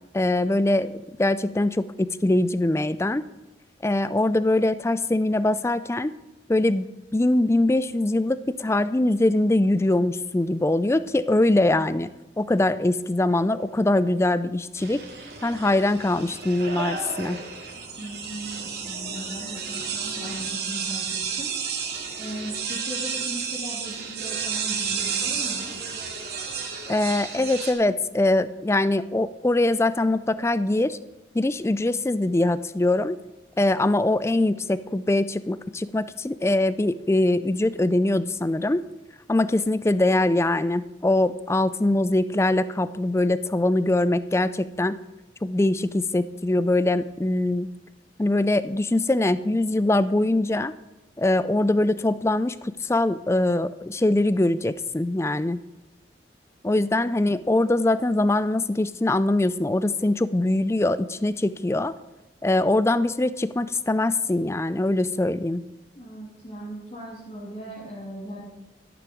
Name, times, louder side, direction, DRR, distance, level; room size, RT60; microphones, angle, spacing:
voice 1, 0.1-0.9 1.2-3.2 3.8-6.1 6.5-6.9 7.1-12.1 12.4-15.0 15.4-17.4 26.9-31.0 31.3-33.2 33.6-38.8 39.3-45.0 45.4-47.7 48.2-50.7 51.2-55.6 56.6-61.9 62.4-65.6, left 2 dB, 15° left, 15 dB, 0.4 m, -22 dB
sound 1, 14.8-27.7, right 6 dB, 60° right, 2.4 m, -32 dB
voice 2, 18.0-21.6 21.9-25.8 65.9-68.4, equal, 35° left, -8 dB, 3.0 m, -38 dB
13.0 x 11.5 x 4.6 m, 0.99 s
head